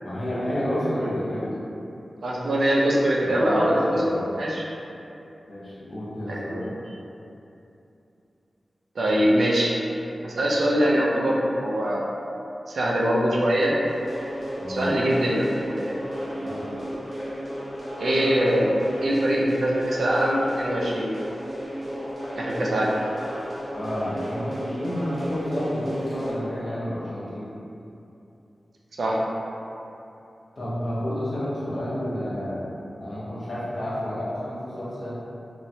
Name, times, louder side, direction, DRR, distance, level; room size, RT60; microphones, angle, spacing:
voice 1, 0.0-1.7 3.2-4.3 5.5-6.7 14.6-14.9 16.4-16.7 23.7-27.5 30.6-32.7 33.0-35.2, equal, 60° left, -8 dB, 0.7 m, -30 dB
voice 2, 2.2-4.0 4.4-4.7 6.3-6.7 9.0-9.7 10.2-12.1 12.7-13.7 14.7-16.0 18.0-21.1 22.4-22.9 29.0-29.2, equal, 85° right, -3 dB, 0.4 m, -23 dB
sound 1, 13.9-26.3, equal, 35° right, 0.7 m, -34 dB
3.0 x 2.0 x 2.6 m, 2.8 s
wide cardioid pair, 75°, 0 cm